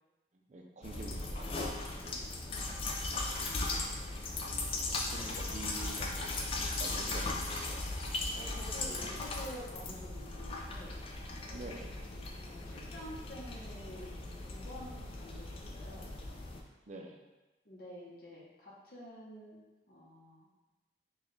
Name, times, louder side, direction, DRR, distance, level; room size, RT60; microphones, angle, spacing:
voice 1, 0.5-2.2 3.6-3.7 5.1-7.9 11.5-12.0 14.7-14.9 16.9-17.2, right 2 dB, 40° right, 1 dB, 0.4 m, -47 dB
sound 1, 0.8-16.6, left 2 dB, 30° left, 0.3 m, -38 dB
voice 2, 2.5-3.0 8.3-11.0 11.4-16.1 17.6-20.5, equal, 55° left, -6 dB, 0.8 m, -49 dB
4.0 x 2.3 x 3.2 m, 1.1 s
head